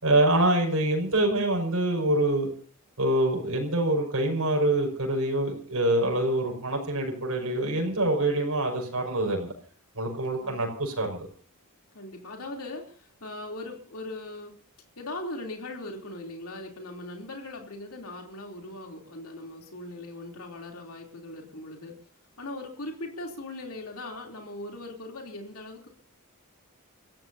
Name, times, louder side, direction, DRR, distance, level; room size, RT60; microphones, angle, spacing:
voice 1, 0.0-2.5 3.0-9.5 10.0-11.3, right 1 dB, 75° right, 1 dB, 5.5 m, -25 dB
voice 2, 10.4-10.8 11.9-14.5 15.0-21.9 22.4-25.9, left 2 dB, 70° left, 2 dB, 3.2 m, -39 dB
29.5 x 15.5 x 2.8 m, 0.41 s
head